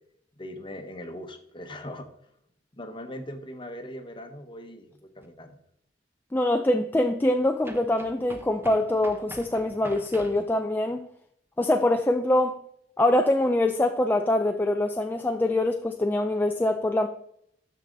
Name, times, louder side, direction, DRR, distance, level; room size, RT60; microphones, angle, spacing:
voice 1, 0.4-2.1 2.8-5.6, left 1 dB, 30° left, 1.0 m, -40 dB
sound 1, 5.2-5.3 7.6-10.5, right 1 dB, 15° right, 0.8 m, -44 dB
voice 2, 6.3-11.0 11.6-12.6 13.0-17.1, left 1 dB, 10° left, 0.3 m, -24 dB
12.5 x 4.8 x 3.9 m
head